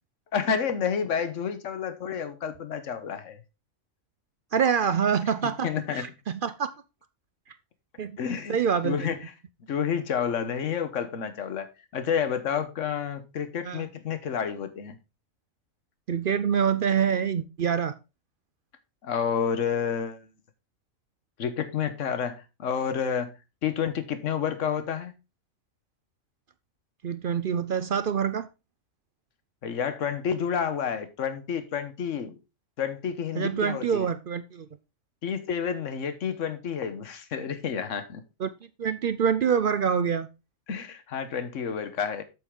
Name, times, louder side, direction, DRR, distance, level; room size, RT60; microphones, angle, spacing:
voice 1, 0.3-3.4 5.4-6.1 8.2-8.6 8.8-9.2 9.7-15.0 19.0-20.3 21.4-23.3 23.6-25.1 29.6-32.4 32.8-34.1 35.2-38.2 40.7-42.2, left 7 dB, 65° left, 1.4 m, -30 dB
voice 2, 4.5-6.7 8.0-8.2 8.5-9.1 13.6-13.9 16.1-18.0 27.0-28.5 33.3-34.7 38.4-38.5 38.8-40.3, right 7 dB, 60° right, 0.6 m, -26 dB
8.2 x 7.8 x 3.7 m
omnidirectional pair, 1.4 m